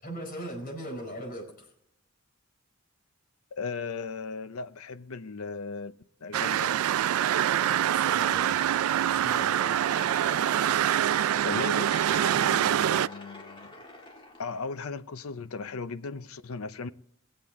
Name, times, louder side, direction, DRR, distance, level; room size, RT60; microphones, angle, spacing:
voice 1, 0.0-1.7 7.8-8.6 9.1-9.8, equal, 45° left, 4.5 m, -39 dB
voice 2, 3.6-5.9 6.2-6.8 10.8-13.7 14.4-16.9, left 4 dB, 80° left, 0.6 m, -37 dB
sound 1, 6.3-13.1, right 10 dB, 75° right, 0.3 m, -25 dB
sound 2, 9.9-14.9, left 2 dB, 25° left, 1.6 m, -45 dB
20.5 x 7.5 x 3.6 m
head